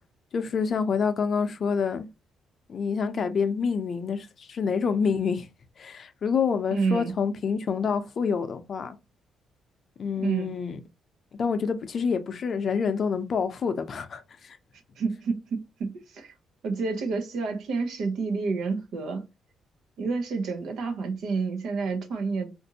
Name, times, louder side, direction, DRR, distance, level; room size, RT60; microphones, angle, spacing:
voice 1, 0.3-2.1 2.7-5.5 5.8-9.0 10.0-10.8 11.4-14.6, left 6 dB, 50° left, 0.6 m, -27 dB
voice 2, 6.7-7.1 10.2-10.5 15.0-16.3 16.6-19.3 20.0-22.5, right 4 dB, 75° right, 0.8 m, -29 dB
3.9 x 2.6 x 2.7 m
cardioid pair, 90°, 0 cm